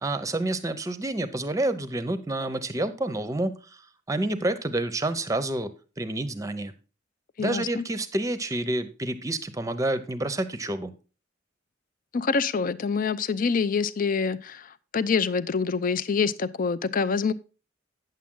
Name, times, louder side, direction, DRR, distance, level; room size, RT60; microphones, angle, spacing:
voice 1, 0.0-3.8 4.1-5.7 6.0-6.7 7.4-10.9, right 2 dB, 15° right, 0.7 m, -28 dB
voice 2, 7.4-7.8 12.1-17.3, left 5 dB, 45° left, 0.4 m, -26 dB
9.3 x 7.4 x 3.7 m
head